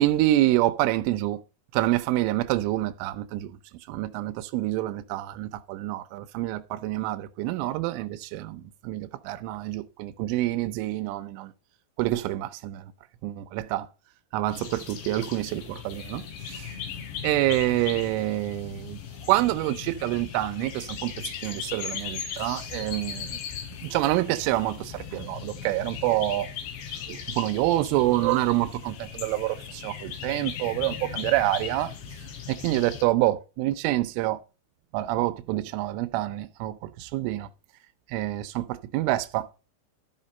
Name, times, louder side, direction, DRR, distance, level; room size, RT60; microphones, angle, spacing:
voice 1, 0.0-1.4 1.7-3.5 3.9-11.5 12.0-12.8 13.2-13.9 14.3-16.7 17.2-19.0 19.3-21.1 21.4-23.4 23.8-26.5 27.1-31.9 32.5-34.4 34.9-37.5 38.1-39.5, right 16 dB, 90° right, 3.2 m, -27 dB
sound 1, 14.5-33.0, left 8 dB, 75° left, 4.7 m, -38 dB
13.0 x 5.7 x 5.3 m
omnidirectional pair, 5.5 m